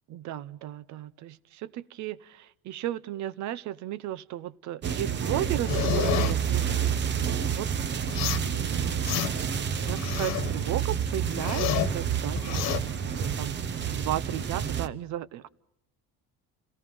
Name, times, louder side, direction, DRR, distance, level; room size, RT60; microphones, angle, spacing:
voice 1, 0.1-6.9 7.4-7.7 8.5-9.1 9.8-13.6 14.0-15.5, right 12 dB, 55° right, 20 dB, 0.9 m, -35 dB
sound 1, 4.8-14.9, right 8 dB, 30° right, 1.0 m, -29 dB
sound 2, 5.7-6.3 8.1-8.5 8.9-9.5 9.9-10.5 10.9-11.9 12.4-12.8, left 12 dB, 50° left, 1.5 m, -29 dB
29.0 x 17.5 x 5.4 m, 0.79 s
cardioid pair, 150°, 34 cm